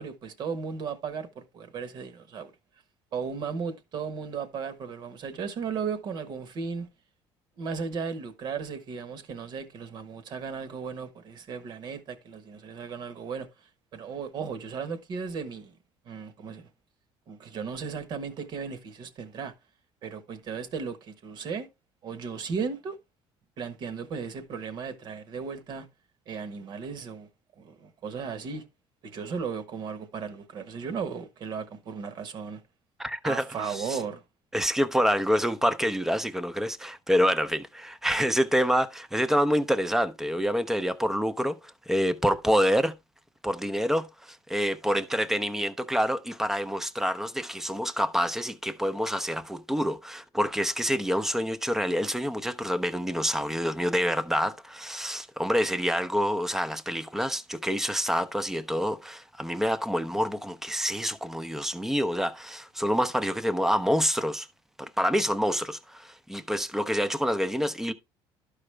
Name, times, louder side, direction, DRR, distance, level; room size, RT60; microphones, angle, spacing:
voice 1, 0.0-2.5 3.1-6.9 7.6-13.5 13.9-15.7 16.1-16.7 17.3-19.5 20.0-21.7 22.0-22.9 23.6-25.9 26.3-27.3 27.6-28.6 29.0-32.6 33.2-34.2, right 6 dB, 50° right, 1.2 m, -35 dB
voice 2, 33.0-34.0 34.5-42.9 43.4-64.5 64.8-67.9, equal, 5° right, 0.6 m, -27 dB
12.0 x 5.0 x 3.2 m
cardioid pair, 150°, 10 cm